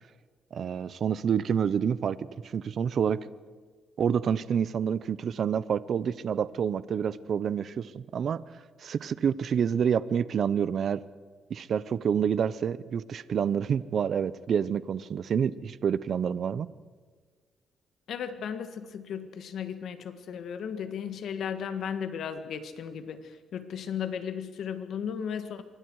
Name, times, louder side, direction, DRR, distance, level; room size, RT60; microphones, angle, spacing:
voice 1, 0.5-2.2 2.4-3.3 4.0-8.4 8.8-11.0 11.5-16.7, right 7 dB, 60° right, 17 dB, 0.7 m, -28 dB
voice 2, 18.1-25.6, left 7 dB, 70° left, 10 dB, 1.7 m, -35 dB
26.0 x 23.5 x 4.8 m, 1.5 s
cardioid pair, 100°, 0 cm